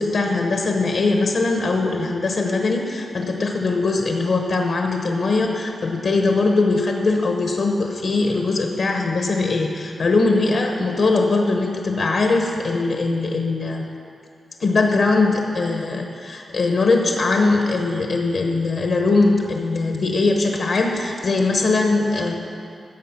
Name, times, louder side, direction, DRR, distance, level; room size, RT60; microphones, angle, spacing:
voice 1, 0.0-13.9 14.6-22.3, left 3 dB, 60° left, 2 dB, 1.0 m, -21 dB
15.0 x 6.7 x 5.9 m, 2.4 s
wide cardioid pair, 145°, 0 cm